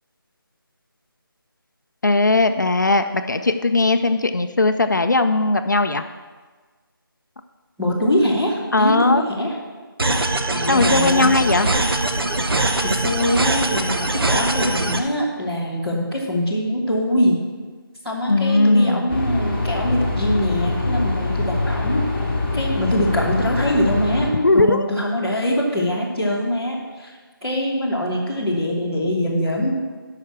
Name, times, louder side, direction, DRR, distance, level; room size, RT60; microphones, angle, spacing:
voice 1, 2.0-6.0 8.7-9.2 10.7-11.7 18.3-19.1 24.3-24.9, left 2 dB, 55° left, 8 dB, 0.5 m, -18 dB
voice 2, 7.8-9.6 10.5-11.4 12.8-17.4 18.0-22.0 22.5-27.1 27.4-29.7, equal, 5° right, -12 dB, 0.7 m, -23 dB
sound 1, 10.0-15.0, right 2 dB, 80° right, 1.0 m, -22 dB
sound 2, 19.1-24.3, left 2 dB, 30° left, 1.7 m, -23 dB
9.4 x 5.8 x 7.3 m, 1.4 s
figure-of-eight pair, 175°, 12 cm